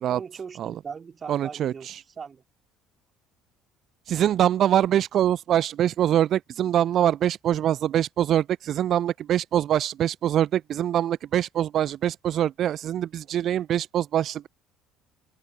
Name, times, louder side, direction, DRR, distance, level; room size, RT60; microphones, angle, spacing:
voice 1, 0.1-2.4, right 6 dB, 30° right, 2.5 m, -39 dB
voice 2, 1.3-2.0 4.1-14.5, right 11 dB, 45° right, 0.3 m, -24 dB
open air
figure-of-eight pair, 60°, 0 cm